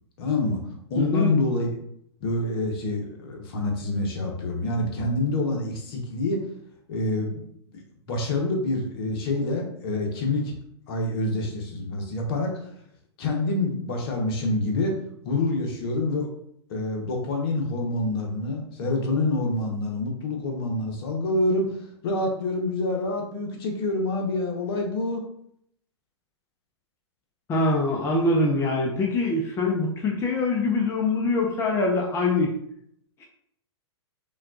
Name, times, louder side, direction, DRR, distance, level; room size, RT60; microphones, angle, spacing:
voice 1, 0.2-0.6 0.9-1.7 2.2-6.4 6.9-7.4 7.7-10.5 10.9-12.5 13.2-15.0 15.2-16.3 16.7-21.8 22.0-25.2, left 2 dB, 55° left, 1 dB, 1.1 m, -27 dB
voice 2, 1.0-1.3 27.5-32.5 33.2-33.3, left 2 dB, 20° left, -1 dB, 0.6 m, -24 dB
5.7 x 2.4 x 2.5 m, 0.72 s
hypercardioid pair, 115°, 15 cm